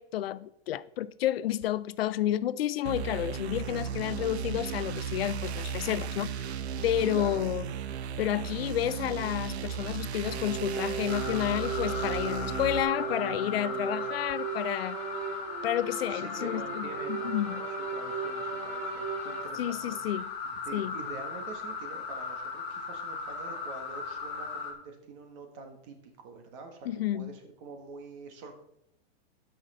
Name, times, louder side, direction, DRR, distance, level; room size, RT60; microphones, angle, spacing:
voice 1, 0.0-6.3 6.8-7.7 8.2-15.0 15.6-17.6 19.6-20.3 20.7-20.9 26.9-27.3, left 12 dB, 70° left, 0.5 m, -30 dB
sound 1, 2.8-12.8, right 7 dB, 90° right, 0.8 m, -35 dB
sound 2, 10.2-19.5, right 7 dB, 65° right, 2.6 m, -37 dB
sound 3, 11.1-24.7, left 4 dB, 15° left, 0.8 m, -37 dB
voice 2, 11.9-12.6 16.1-26.9 27.1-28.6, right 3 dB, 30° right, 1.3 m, -46 dB
12.5 x 5.8 x 4.1 m
supercardioid pair, 180°, 32 cm